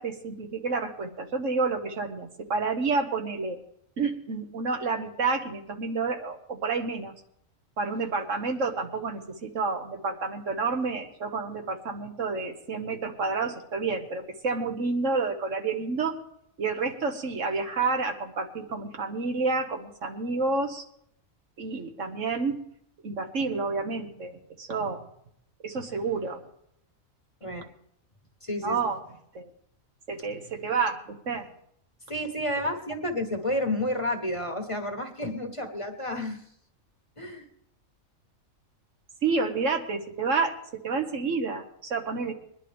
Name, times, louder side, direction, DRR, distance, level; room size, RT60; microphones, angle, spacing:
voice 1, 0.0-3.6 4.0-7.1 7.8-16.1 16.6-20.8 21.6-22.6 23.0-25.0 25.6-26.4 27.4-27.6 28.6-29.0 29.3-29.5 30.1-31.5 39.2-40.5 40.8-42.3, right 4 dB, 65° right, 4 dB, 1.6 m, -29 dB
voice 2, 28.4-28.8 32.1-36.4 37.2-37.5, left 1 dB, 25° left, 3 dB, 1.3 m, -30 dB
22.0 x 10.5 x 3.5 m, 0.71 s
omnidirectional pair, 1.4 m